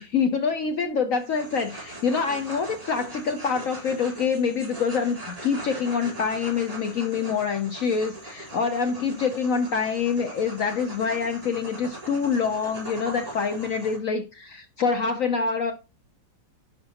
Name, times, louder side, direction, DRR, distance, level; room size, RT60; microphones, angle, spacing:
voice 1, 0.0-15.7, left 5 dB, 65° left, 0.8 m, -26 dB
sound 1, 1.2-14.0, right 1 dB, 20° right, 3.4 m, -40 dB
11.0 x 5.2 x 2.8 m
omnidirectional pair, 2.0 m